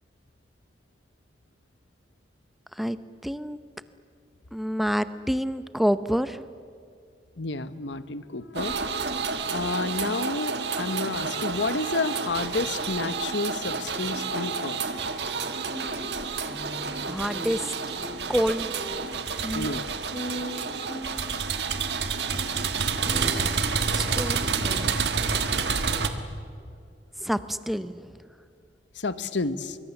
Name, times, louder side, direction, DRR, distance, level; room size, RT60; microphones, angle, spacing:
voice 1, 3.2-3.6 4.5-6.4 17.1-17.7 18.3-18.7 22.2-22.6 23.9-25.0 25.3-25.4 27.2-28.2, equal, ahead, 12 dB, 0.7 m, -28 dB
voice 2, 7.4-9.1 9.5-14.8 19.5-19.8 28.9-29.8, left 3 dB, 85° left, 13 dB, 1.1 m, -30 dB
sound 1, 8.6-26.1, right 5 dB, 70° right, 1.6 m, -29 dB
sound 2, 15.7-21.5 22.3-22.4 22.8-23.5, equal, 30° left, 3.9 m, -39 dB
24.5 x 24.0 x 7.2 m, 2.3 s
head